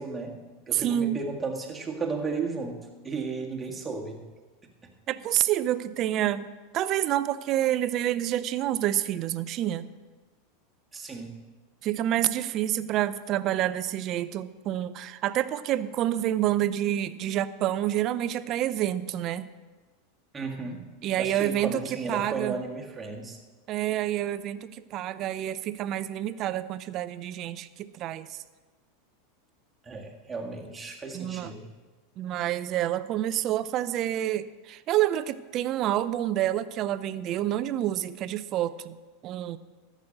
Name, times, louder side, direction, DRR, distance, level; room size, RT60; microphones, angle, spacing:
voice 1, 0.0-4.2 10.9-11.4 20.3-20.9 21.2-23.4 29.8-31.7, right 4 dB, 20° right, 1 dB, 1.8 m, -34 dB
voice 2, 0.7-1.2 5.1-6.5 6.7-9.9 11.8-19.5 21.0-21.8 22.1-22.6 23.7-28.4 31.1-31.5 32.2-39.0 39.2-39.6, right 12 dB, 45° right, 15 dB, 0.5 m, -28 dB
14.0 x 6.2 x 6.4 m, 1.3 s
hypercardioid pair, 90°, 0 cm